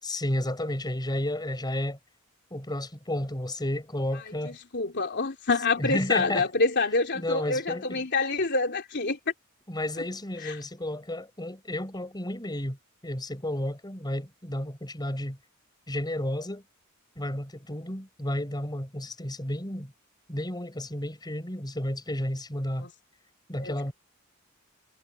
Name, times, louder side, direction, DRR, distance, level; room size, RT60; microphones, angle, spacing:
voice 1, 0.0-2.0 2.5-4.6 5.8-6.5 7.1-8.0 9.7-12.8 13.0-15.4 15.9-16.6 17.2-19.9 20.3-22.9 23.5-23.9, left 1 dB, 20° left, 6.1 m, -32 dB
voice 2, 4.4-9.2 10.4-10.5 22.8-22.9 23.6-23.9, left 3 dB, 55° left, 3.4 m, -27 dB
head